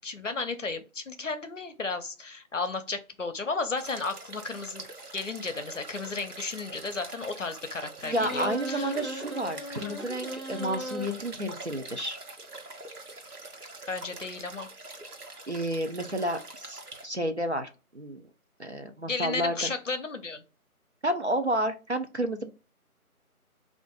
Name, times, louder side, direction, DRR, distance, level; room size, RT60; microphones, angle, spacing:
voice 1, 0.0-4.9 5.1-8.9 9.8-10.1 13.9-14.7 19.1-20.4, left 3 dB, 55° left, 9 dB, 0.6 m, -34 dB
sound 1, 3.8-17.1, right 2 dB, 90° right, 1.1 m, -44 dB
sound 2, 8.0-11.0, equal, ahead, 0.6 m, -37 dB
voice 2, 8.1-12.2 15.5-18.2 18.6-19.7 21.0-22.5, right 1 dB, 50° right, 7 dB, 0.5 m, -31 dB
3.4 x 2.5 x 3.7 m, 0.32 s
figure-of-eight pair, 175°, 44 cm